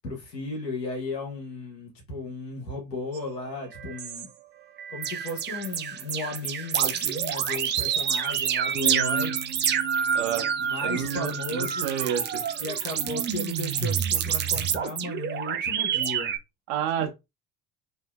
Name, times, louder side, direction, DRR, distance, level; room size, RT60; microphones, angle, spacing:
voice 1, 0.0-4.3 4.9-9.4 10.6-11.9 12.6-16.4 17.0-17.1, left 2 dB, 85° left, 1.1 m, -35 dB
sound 1, 3.1-3.2 3.7-4.3 4.8-16.4, right 8 dB, 25° right, 0.4 m, -28 dB
voice 2, 10.1-10.5 10.8-12.4 16.7-17.1, right 9 dB, 55° right, 0.9 m, -29 dB
2.8 x 2.6 x 2.3 m
figure-of-eight pair, 60°, 48 cm